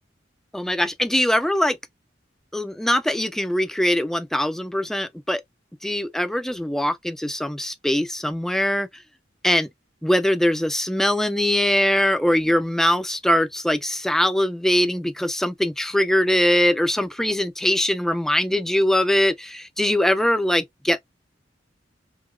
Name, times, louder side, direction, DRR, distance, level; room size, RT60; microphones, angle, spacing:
voice 1, 0.5-1.8 2.5-5.4 5.8-8.9 9.4-9.7 10.0-21.0, left 1 dB, ahead, 0.3 m, -22 dB
3.0 x 2.7 x 2.5 m
head